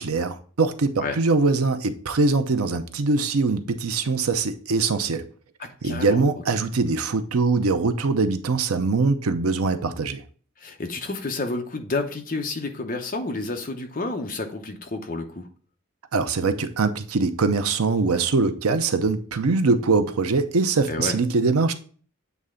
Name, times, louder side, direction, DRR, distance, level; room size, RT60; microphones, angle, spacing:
voice 1, 0.0-5.3 5.8-10.2 16.1-21.7, right 3 dB, 90° right, 0.6 m, -22 dB
voice 2, 5.6-6.3 10.6-15.5 20.9-21.2, left 3 dB, 40° left, 0.8 m, -30 dB
8.2 x 3.3 x 3.7 m
head